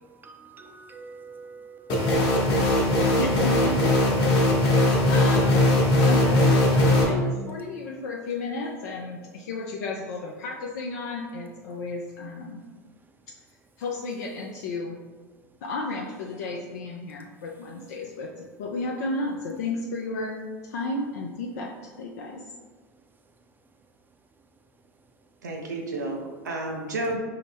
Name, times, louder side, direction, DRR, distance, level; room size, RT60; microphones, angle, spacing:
voice 1, 0.2-2.7, right 4 dB, 20° right, 4 dB, 0.5 m, -46 dB
sound 1, 1.9-7.0, left 1 dB, 50° left, 1.0 m, -20 dB
voice 2, 2.9-4.4 4.8-5.7 6.0-12.6 13.3-13.4 13.8-15.0 15.6-20.4 20.6-22.5, left 2 dB, 70° left, -1 dB, 0.4 m, -33 dB
voice 3, 25.4-27.2, right 2 dB, 85° right, 1 dB, 0.5 m, -31 dB
5.4 x 2.0 x 3.5 m, 1.4 s
hypercardioid pair, 75°, 9 cm